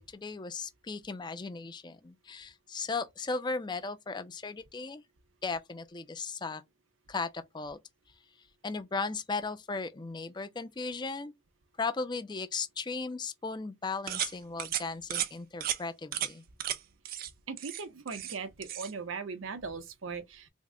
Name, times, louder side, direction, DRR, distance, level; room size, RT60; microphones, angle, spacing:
voice 1, 0.0-5.0 5.4-6.6 7.1-7.8 8.6-11.3 11.8-16.4, left 4 dB, 20° left, 0.4 m, -36 dB
sound 1, 14.1-14.3 14.6-14.8 15.1-15.3 15.6-15.8 16.1-16.3 16.6-16.8 17.0-17.3 17.6-18.4 18.6-18.9, right 11 dB, 45° right, 0.4 m, -34 dB
voice 2, 17.5-20.5, right 5 dB, 80° right, 0.7 m, -39 dB
3.4 x 2.1 x 3.6 m
head